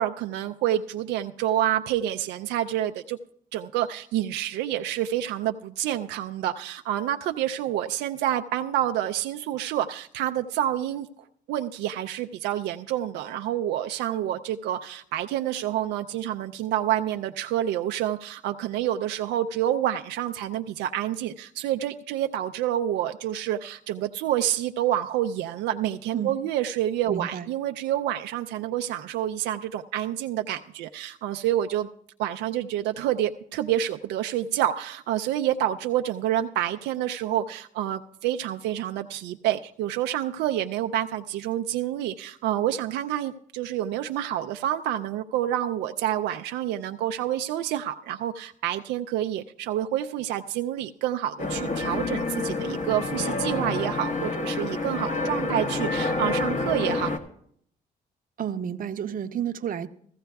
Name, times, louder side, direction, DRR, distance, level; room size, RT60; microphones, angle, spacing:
voice 1, 0.0-3.2 3.5-11.1 11.5-31.9 32.2-57.1, right 12 dB, 85° right, 0.4 m, -28 dB
voice 2, 27.1-27.5 58.4-59.9, right 9 dB, 55° right, 0.7 m, -30 dB
sound 1, 51.4-57.2, left 3 dB, 45° left, 1.3 m, -28 dB
15.5 x 14.5 x 2.3 m
supercardioid pair, 70°, 17 cm